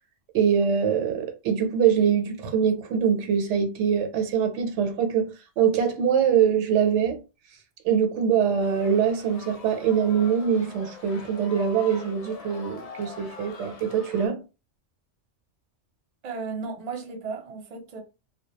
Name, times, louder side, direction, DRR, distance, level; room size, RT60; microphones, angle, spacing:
voice 1, 0.3-7.2 7.8-14.4, right 7 dB, 80° right, 0.9 m, -23 dB
sound 1, 8.6-14.3, left 4 dB, 65° left, 0.3 m, -43 dB
voice 2, 16.2-18.0, right 4 dB, 45° right, 0.6 m, -34 dB
2.2 x 2.1 x 2.8 m
omnidirectional pair, 1.2 m